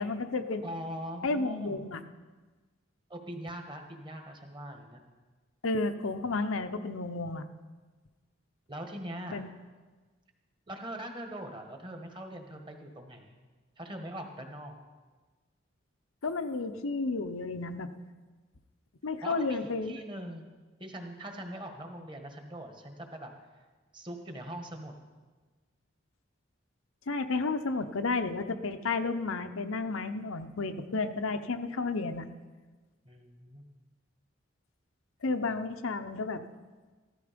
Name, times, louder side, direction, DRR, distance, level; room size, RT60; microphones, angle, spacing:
voice 1, 0.0-0.6 1.2-2.0 5.6-7.5 9.3-9.5 16.2-17.9 19.0-20.0 27.1-32.3 35.2-36.4, left 3 dB, 85° left, 8 dB, 0.8 m, -32 dB
voice 2, 0.6-1.8 3.1-5.0 8.7-9.4 10.7-13.4 13.8-14.8 19.2-20.4 20.8-23.3 23.9-24.9 33.0-33.7, right 1 dB, 25° right, 4 dB, 1.4 m, -42 dB
14.5 x 13.0 x 5.2 m, 1.3 s
head